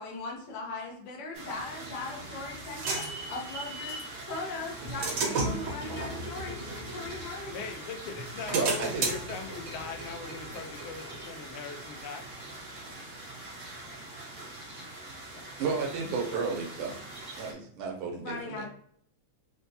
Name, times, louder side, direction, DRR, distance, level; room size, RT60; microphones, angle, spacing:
voice 1, 0.0-7.6 18.2-18.7, left 2 dB, 65° left, -2 dB, 1.3 m, -39 dB
sound 1, 1.3-17.5, right 2 dB, 45° right, 0.6 m, -44 dB
sound 2, 1.9-4.1 4.6-7.7 8.1-11.6, right 3 dB, 70° right, 1.6 m, -35 dB
voice 2, 7.5-12.4 15.3-15.5, left 5 dB, 85° left, 5 dB, 1.4 m, -40 dB
voice 3, 8.5-9.0 15.6-16.9 17.3-18.7, right 5 dB, 90° right, 1 dB, 1.6 m, -32 dB
4.3 x 2.1 x 2.7 m, 0.63 s
omnidirectional pair, 2.3 m